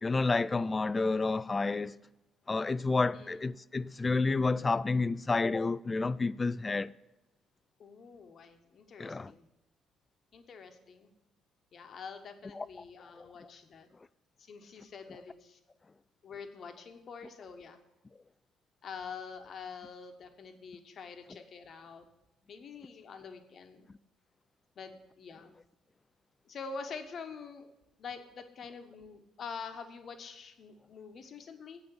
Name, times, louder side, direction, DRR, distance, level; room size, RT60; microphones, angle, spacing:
voice 1, 0.0-2.0 2.5-6.9 9.0-9.3 12.5-12.7 13.1-13.5, left 3 dB, 25° left, 0.4 m, -30 dB
voice 2, 3.1-3.4 7.8-9.5 10.3-11.1 11.7-13.9 14.4-15.6 16.2-17.8 18.8-22.1 22.5-23.9 24.8-25.5 26.5-27.7 28.0-31.8, left 5 dB, 50° left, 1.2 m, -46 dB
8.5 x 6.0 x 7.0 m
hypercardioid pair, 50°, 0 cm